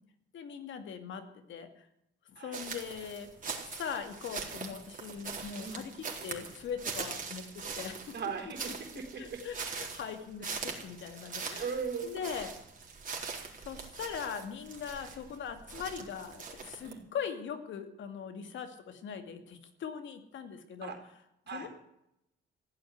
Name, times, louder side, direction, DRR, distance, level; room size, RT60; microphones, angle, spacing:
voice 1, 0.3-1.9 2.3-3.3 3.6-5.9 6.2-8.1 8.9-11.7 12.0-12.5 13.6-20.9 21.5-21.7, left 7 dB, 70° left, 7 dB, 2.5 m, -41 dB
sound 1, 2.5-16.9, right 5 dB, 40° right, 4.0 m, -42 dB
voice 2, 8.1-9.4 11.6-12.1 15.0-15.1 16.8-17.0 20.8-21.0 21.5-21.7, right 6 dB, 60° right, 3 dB, 4.2 m, -38 dB
15.5 x 9.3 x 9.5 m, 0.82 s
cardioid pair, 90°, 20 cm